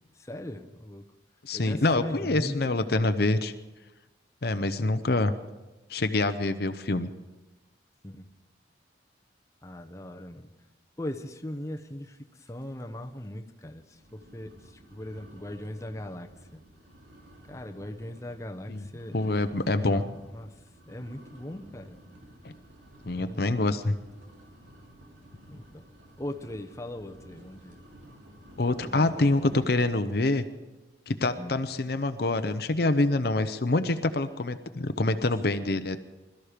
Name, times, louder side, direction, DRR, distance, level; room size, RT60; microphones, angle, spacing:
voice 1, 0.1-1.0 1.5-2.7 4.6-4.7 8.0-8.4 9.6-10.5 11.0-16.6 17.5-22.0 23.2-23.6 25.5-25.8 26.2-27.8 28.8-29.6 31.4-31.6, left 1 dB, 15° left, 4 dB, 0.9 m, -40 dB
voice 2, 1.4-3.5 4.4-5.3 5.9-7.1 18.7-18.8 19.1-20.0 22.4-22.5 23.1-24.0 28.6-30.4 31.1-36.0, left 2 dB, 55° left, 10 dB, 0.7 m, -26 dB
sound 1, 11.8-12.2 12.4-12.8 13.2-13.3 13.9-30.1, right 1 dB, 80° right, 3.0 m, -53 dB
22.0 x 13.0 x 5.1 m, 1.1 s
head